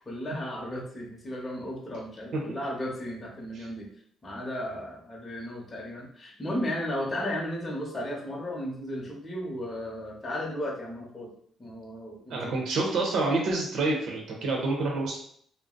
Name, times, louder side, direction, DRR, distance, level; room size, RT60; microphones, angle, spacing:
voice 1, 0.1-3.9 4.2-11.3 11.6-12.5, equal, 25° left, -2 dB, 0.9 m, -35 dB
voice 2, 12.3-15.2, right 2 dB, 70° right, 0 dB, 0.7 m, -28 dB
2.5 x 2.0 x 3.7 m, 0.63 s
cardioid pair, 90°, 0 cm